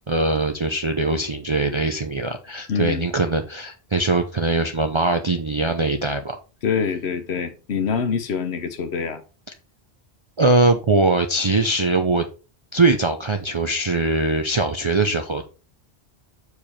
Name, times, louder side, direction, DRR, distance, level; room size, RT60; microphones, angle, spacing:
voice 1, 0.1-6.4 10.4-12.3 12.7-15.4, right 2 dB, 35° right, 0.6 m, -21 dB
voice 2, 2.7-3.1 6.6-9.2, left 6 dB, 75° left, 1.1 m, -25 dB
6.9 x 4.9 x 4.3 m
omnidirectional pair, 1.1 m